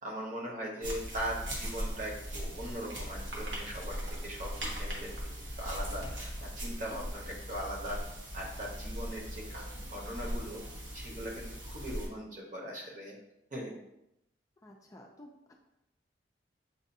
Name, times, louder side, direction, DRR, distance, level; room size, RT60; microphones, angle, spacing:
voice 1, 0.0-5.1 5.6-8.0 8.3-10.6 10.9-13.1 13.5-13.7, equal, 45° right, -2 dB, 1.1 m, -40 dB
sound 1, 0.8-12.1, equal, 85° right, 1.2 m, -39 dB
voice 2, 14.6-15.5, equal, 20° left, 1 dB, 0.4 m, -53 dB
7.0 x 2.5 x 2.7 m, 0.84 s
head